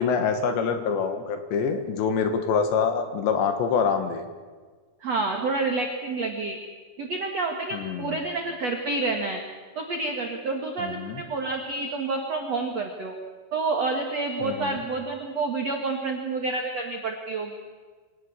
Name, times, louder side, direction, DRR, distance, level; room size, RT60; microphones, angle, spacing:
voice 1, 0.0-4.2 7.7-8.2 10.8-11.2 14.4-14.8, left 6 dB, 70° left, 8 dB, 3.4 m, -25 dB
voice 2, 5.0-6.6 7.0-9.4 9.7-13.2 13.5-17.6, right 3 dB, 70° right, 3 dB, 1.5 m, -28 dB
24.5 x 19.0 x 7.2 m, 1.4 s
omnidirectional pair, 5.9 m